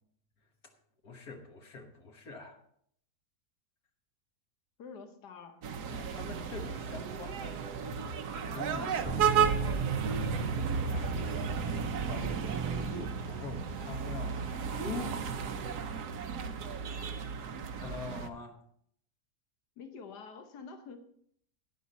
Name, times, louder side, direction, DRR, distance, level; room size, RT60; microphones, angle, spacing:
voice 1, 1.0-2.6 5.9-7.6 8.5-10.6 10.9-11.5 12.1-15.3 17.8-18.6, left 3 dB, 65° left, 3 dB, 1.8 m, -44 dB
voice 2, 4.8-5.7 19.8-21.0, left 5 dB, 90° left, 7 dB, 1.6 m, -47 dB
sound 1, 5.6-18.3, right 6 dB, 80° right, 1.3 m, -33 dB
Bass guitar, 9.0-15.3, right 3 dB, 30° left, 1.6 m, -40 dB
11.5 x 9.7 x 4.1 m, 0.66 s
omnidirectional pair, 1.7 m